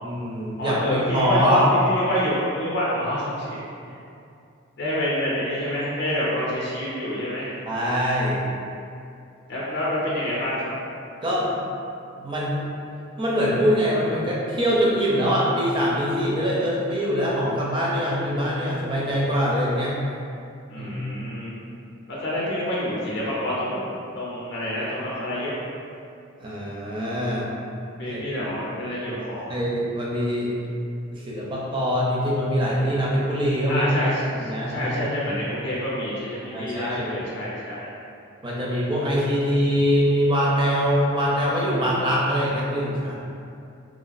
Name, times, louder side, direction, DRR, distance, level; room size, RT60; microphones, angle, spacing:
voice 1, 0.0-1.6 7.7-8.5 11.2-11.6 12.2-12.6 13.2-19.9 20.8-20.9 26.4-27.5 28.0-28.2 29.5-30.5 31.1-33.9 34.3-34.9 36.4-37.2 38.4-43.2, equal, 25° right, -5 dB, 0.4 m, -23 dB
voice 2, 0.6-3.6 4.8-7.6 9.5-10.7 20.7-21.5 22.1-25.5 28.0-29.6 33.6-37.9, equal, 50° left, -7 dB, 0.5 m, -27 dB
3.0 x 2.3 x 2.5 m, 2.5 s
head